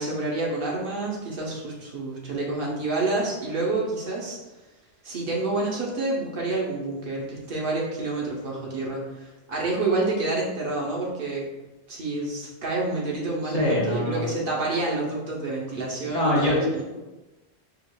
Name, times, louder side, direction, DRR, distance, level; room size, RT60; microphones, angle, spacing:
voice 1, 0.0-4.4 5.0-11.5 11.9-16.8, right 2 dB, 55° right, -3 dB, 0.9 m, -28 dB
voice 2, 13.4-14.2 16.1-16.7, left 1 dB, 40° left, -6 dB, 0.7 m, -24 dB
4.7 x 2.4 x 2.2 m, 1.1 s
omnidirectional pair, 1.1 m